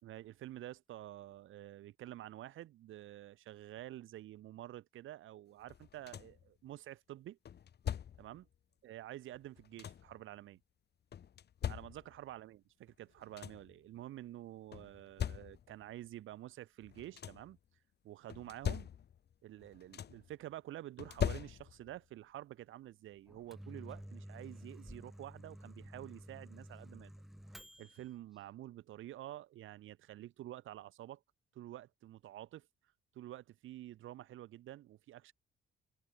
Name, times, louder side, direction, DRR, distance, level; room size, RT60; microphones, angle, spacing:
voice 1, 0.0-7.4 8.2-8.5 8.8-10.6 11.7-17.6 18.0-18.9 19.4-27.1 27.8-31.2 31.5-32.7 33.1-35.3, right 14 dB, 85° right, 5.7 m, -49 dB
sound 1, 5.7-6.5 7.4-8.4 9.3-10.2 11.1-12.3 12.9-13.0 13.2-13.8 14.7-15.9 16.8-17.6 18.3-19.3 19.6-20.3 21.0-22.0 23.3-23.4 23.9-24.1, left 9 dB, 55° left, 2.2 m, -41 dB
Microwave oven, 23.3-28.1, equal, ahead, 0.9 m, -52 dB
cardioid pair, 90°, 20 cm